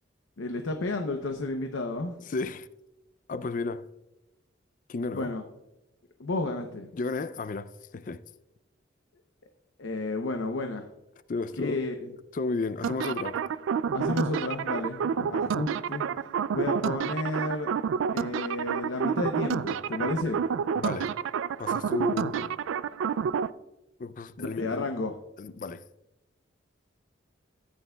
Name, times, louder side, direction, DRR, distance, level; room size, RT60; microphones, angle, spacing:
voice 1, 0.4-2.1 5.1-5.4 6.2-6.9 9.8-10.9 11.6-12.1 13.9-16.1 16.5-17.7 18.1-20.4 24.4-25.1, left 2 dB, 80° left, 0.7 m, -31 dB
voice 2, 2.2-2.7 3.3-3.9 4.9-5.3 6.9-8.2 11.3-11.8 12.3-13.4 15.1-15.4 20.7-21.2 21.6-22.6 24.0-24.9 25.4-25.9, left 3 dB, 40° left, 0.4 m, -33 dB
sound 1, 12.8-23.5, right 7 dB, 80° right, 0.3 m, -29 dB
14.5 x 9.2 x 2.3 m
head